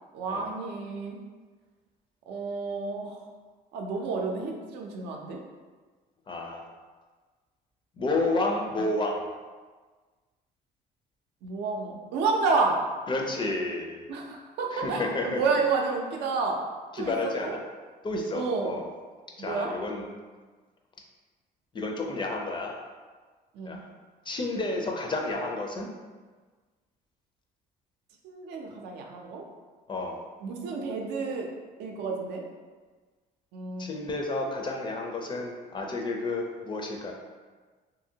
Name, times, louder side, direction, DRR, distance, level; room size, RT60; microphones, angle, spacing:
voice 1, 0.1-1.2 2.3-3.2 3.7-5.4 8.8-8.9 11.4-12.8 14.1-16.6 17.0-17.5 18.3-18.8 19.4-19.7 23.5-23.8 28.2-29.4 30.4-31.5 31.8-32.4 33.5-33.9, right 4 dB, 80° right, 1 dB, 0.5 m, -30 dB
voice 2, 6.3-6.6 8.0-9.2 13.1-14.0 14.7-15.4 16.9-17.6 18.0-18.9 19.4-20.0 21.7-22.7 23.7-23.8 24.3-25.9 29.9-30.2 33.8-37.1, left 2 dB, 30° left, 1 dB, 0.4 m, -30 dB
2.8 x 2.6 x 2.7 m, 1.4 s
cardioid pair, 110°, 17 cm